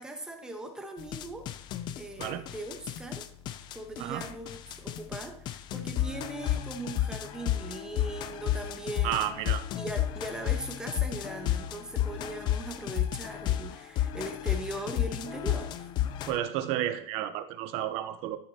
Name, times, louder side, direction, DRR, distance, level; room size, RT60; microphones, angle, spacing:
voice 1, 0.0-1.5 1.9-3.2 3.7-9.3 9.7-15.9, right 2 dB, 5° right, 4 dB, 1.1 m, -40 dB
sound 1, 1.0-16.4, left 12 dB, 30° left, 0.5 m, -32 dB
voice 2, 9.0-9.6 16.3-18.4, right 11 dB, 45° right, 11 dB, 0.8 m, -31 dB
12.5 x 6.8 x 2.9 m, 0.65 s
supercardioid pair, 155°, 15 cm